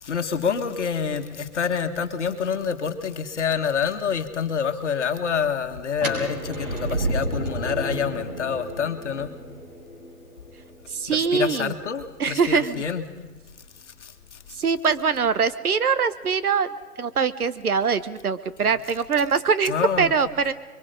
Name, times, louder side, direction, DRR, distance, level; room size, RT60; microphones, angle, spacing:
voice 1, 0.0-9.3 11.1-13.1 14.0-14.4 19.7-20.1, left 6 dB, 50° left, 7 dB, 1.8 m, -27 dB
sound 1, 5.9-11.8, right 1 dB, 35° right, 5.5 m, -31 dB
voice 2, 10.9-11.7 12.2-12.8 14.6-20.5, right 6 dB, 70° right, 13 dB, 1.3 m, -23 dB
26.0 x 23.0 x 5.3 m, 1.3 s
hypercardioid pair, 165°, 45 cm